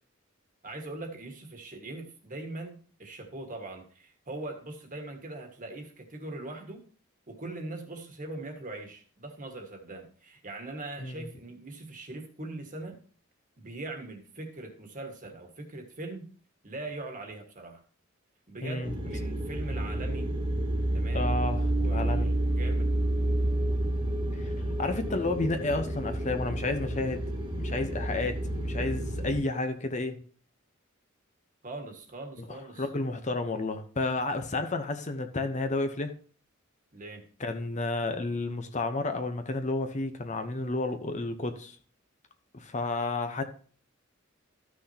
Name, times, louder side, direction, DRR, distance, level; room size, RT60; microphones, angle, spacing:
voice 1, 0.6-6.8 7.3-13.0 13.6-16.3 16.6-17.8 18.5-20.3 20.9-21.3 21.7-22.9 31.6-32.9 36.9-37.2, right 2 dB, 40° right, 4 dB, 1.6 m, -41 dB
voice 2, 18.6-18.9 21.1-22.3 24.3-24.5 24.8-27.2 27.6-30.2 32.8-36.1 37.4-41.8 42.5-43.4, left 2 dB, 35° left, 7 dB, 0.8 m, -31 dB
sound 1, 18.8-29.4, right 1 dB, 25° right, 1.6 m, -30 dB
13.5 x 6.2 x 2.8 m, 0.43 s
head